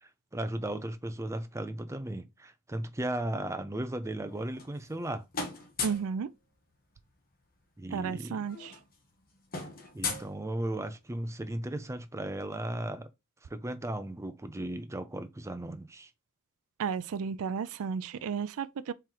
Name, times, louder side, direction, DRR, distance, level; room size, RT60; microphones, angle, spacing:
voice 1, 0.0-5.3 7.8-8.4 9.9-13.1 13.4-16.1, right 1 dB, 15° right, 0.5 m, -36 dB
sound 1, 4.3-5.1 5.3-6.1 7.5-7.6 7.9-8.1 8.3-11.0, left 4 dB, 40° left, 1.2 m, -38 dB
voice 2, 5.8-6.3 7.9-8.7 16.8-18.9, right 6 dB, 65° right, 0.4 m, -33 dB
4.4 x 3.1 x 3.8 m
head